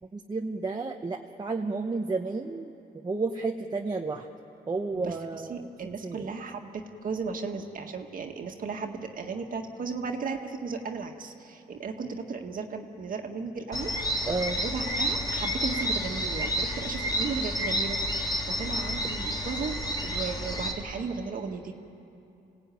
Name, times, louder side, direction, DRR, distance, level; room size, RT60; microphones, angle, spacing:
voice 1, 0.1-2.7 3.0-4.3 4.7-5.7 6.0-6.3 14.2-14.6, right 3 dB, 25° right, 2 dB, 1.0 m, -31 dB
voice 2, 5.5-13.9 14.6-21.7, right 4 dB, 50° right, 4 dB, 1.9 m, -35 dB
sound 1, 13.7-20.7, equal, 20° left, 3.9 m, -30 dB
27.5 x 17.5 x 9.3 m, 2.7 s
cardioid pair, 105°, 18 cm